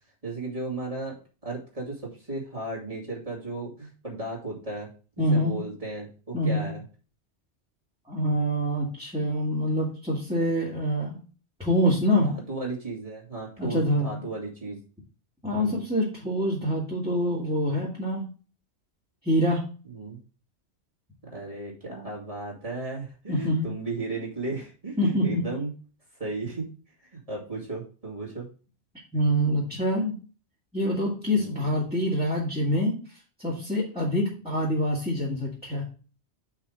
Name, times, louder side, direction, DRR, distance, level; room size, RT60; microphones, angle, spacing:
voice 1, 0.2-1.2 1.4-4.9 5.2-6.8 12.2-14.8 15.5-15.8 19.8-20.2 21.2-25.7 26.2-26.7 27.1-28.5 31.3-31.6, right 2 dB, 30° right, -4 dB, 2.5 m, -35 dB
voice 2, 5.2-5.5 6.3-6.7 8.1-11.2 11.6-12.3 13.6-14.2 15.4-18.3 19.2-19.6 23.3-23.6 25.0-25.4 29.1-30.1 30.7-33.0 33.4-35.8, equal, 5° right, -8 dB, 2.4 m, -25 dB
5.5 x 5.0 x 6.2 m, 0.36 s
omnidirectional pair, 1.2 m